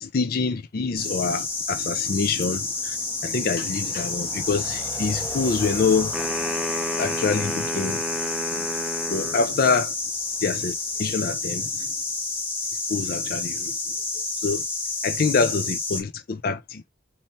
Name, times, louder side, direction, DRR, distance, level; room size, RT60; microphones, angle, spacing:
voice 1, 0.0-3.0 3.2-6.1 7.0-8.0 8.5-8.6 9.1-9.9 10.4-11.9 12.9-13.7 14.4-14.6 15.0-16.9, left 4 dB, 50° left, 0.4 m, -26 dB
sound 1, 1.0-16.0, left 3 dB, 10° left, 1.6 m, -30 dB
sound 2, 6.1-9.5, equal, 5° right, 0.7 m, -31 dB
4.4 x 2.8 x 4.2 m
head